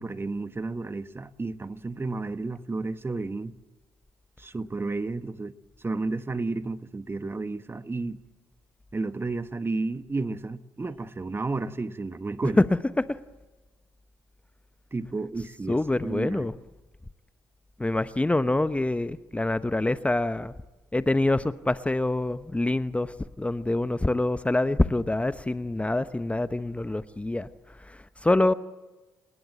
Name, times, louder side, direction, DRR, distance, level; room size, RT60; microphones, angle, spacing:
voice 1, 0.0-3.5 4.4-5.5 5.8-8.2 8.9-12.6 14.9-16.5, right 3 dB, 25° right, 1.3 m, -32 dB
voice 2, 15.7-16.5 17.8-20.5 20.9-27.5 28.2-28.5, left 2 dB, 15° left, 0.9 m, -26 dB
30.0 x 20.0 x 7.7 m
hypercardioid pair, 45°, 10 cm